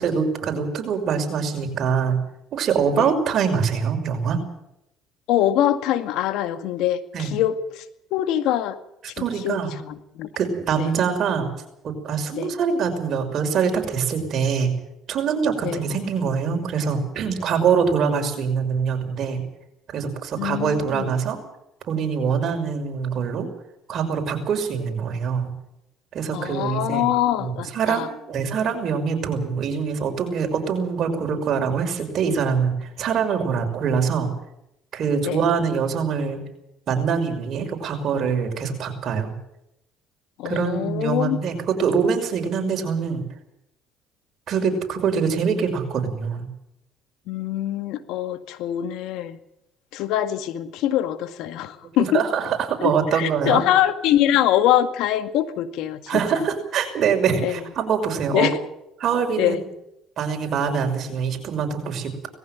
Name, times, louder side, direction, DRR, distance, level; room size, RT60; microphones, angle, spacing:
voice 1, 0.0-2.2 2.5-4.4 7.1-7.4 9.2-9.7 10.4-11.5 11.8-14.7 15.1-19.4 19.9-21.4 21.9-23.5 23.9-25.5 26.1-27.0 27.4-34.3 34.9-36.4 36.9-39.3 40.4-43.2 44.5-46.5 52.1-53.6 56.1-58.5 59.0-59.7 60.2-62.3, right 6 dB, 55° right, 4 dB, 6.0 m, -24 dB
voice 2, 5.3-7.8 8.1-8.8 9.2-10.3 10.8-10.9 12.3-12.5 15.6-15.8 20.4-21.1 26.3-28.1 35.3-35.4 40.4-41.4 47.3-49.4 49.9-52.2 52.8-56.4 57.4-57.6 58.3-58.6 59.4-59.6, left 12 dB, 75° left, 10 dB, 2.0 m, -24 dB
19.5 x 15.0 x 9.4 m, 0.81 s
supercardioid pair, 90°, 0 cm